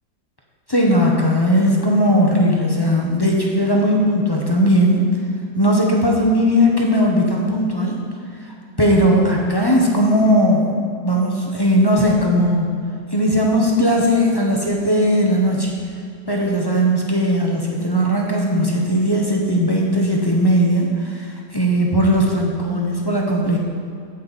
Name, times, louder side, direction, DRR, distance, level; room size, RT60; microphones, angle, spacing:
voice 1, 0.7-5.0 5.5-8.0 8.4-10.7 11.0-12.8 13.1-15.7 16.3-23.6, equal, 20° left, -2 dB, 0.8 m, -18 dB
15.5 x 5.2 x 4.2 m, 2.4 s
omnidirectional pair, 1.8 m